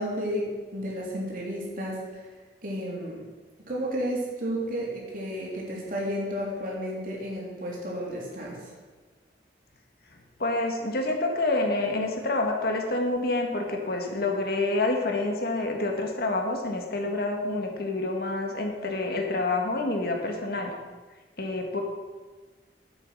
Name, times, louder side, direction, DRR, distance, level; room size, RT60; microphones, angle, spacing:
voice 1, 0.0-2.2 2.6-3.2 3.7-8.7, equal, 50° right, -3 dB, 3.5 m, -32 dB
voice 2, 10.4-20.7 21.4-21.8, left 2 dB, 60° left, 3 dB, 1.7 m, -28 dB
11.0 x 8.2 x 6.3 m, 1.4 s
head